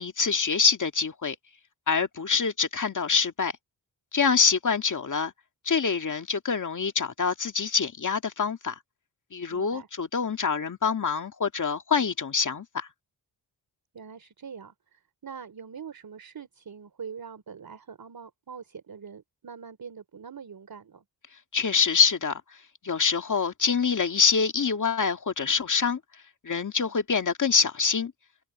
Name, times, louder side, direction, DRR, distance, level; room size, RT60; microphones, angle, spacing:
voice 1, 0.0-1.4 1.9-3.5 4.1-5.3 5.7-8.8 9.3-12.9 21.5-22.4 22.8-26.0 26.4-28.1, left 5 dB, 45° left, 2.2 m, -25 dB
voice 2, 9.5-9.9 13.9-21.0 26.8-26.9, right 6 dB, 55° right, 3.2 m, -43 dB
cardioid pair, 85°, 42 cm